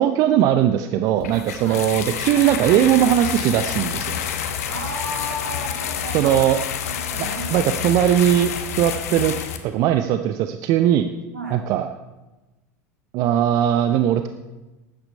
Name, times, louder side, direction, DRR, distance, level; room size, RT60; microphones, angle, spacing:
voice 1, 0.0-4.3 6.1-6.6 7.5-8.5 8.8-9.3 9.6-11.1 11.5-11.9 13.1-14.3, right 11 dB, 45° right, 9 dB, 0.6 m, -19 dB
sound 1, 1.2-9.6, left 9 dB, 65° left, 1.1 m, -28 dB
voice 2, 4.7-6.4 6.9-7.7 11.3-11.6, right 1 dB, 75° right, 0 dB, 2.9 m, -33 dB
13.0 x 9.0 x 5.4 m, 1.1 s
figure-of-eight pair, 80°, 9 cm